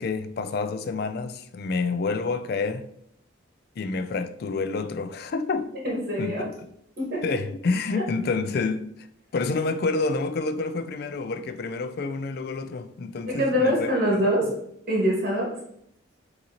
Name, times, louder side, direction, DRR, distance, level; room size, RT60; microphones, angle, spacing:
voice 1, 0.0-2.9 3.8-5.7 6.2-6.5 7.2-8.9 9.3-13.9, left 3 dB, 50° left, 0.3 m, -28 dB
voice 2, 5.8-6.4 7.0-7.2 7.9-8.0 13.3-14.5 14.9-15.5, equal, 50° right, 1.5 m, -24 dB
6.2 x 2.9 x 2.9 m
head